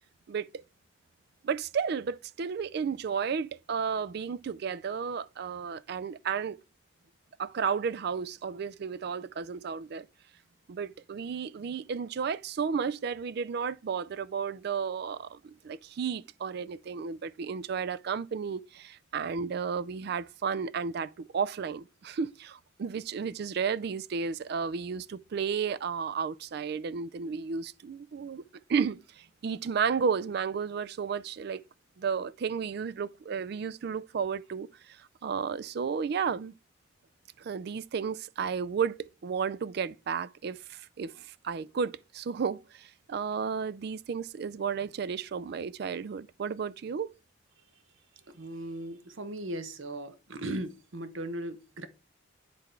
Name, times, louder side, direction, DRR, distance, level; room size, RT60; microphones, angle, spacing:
voice 1, 1.4-6.6 7.4-10.1 10.7-28.4 28.7-31.6 32.0-36.5 37.4-41.1 41.4-47.1, right 6 dB, 55° right, 0.3 m, -33 dB
voice 2, 48.3-51.9, right 1 dB, 75° right, 0.8 m, -38 dB
9.9 x 3.5 x 4.4 m
head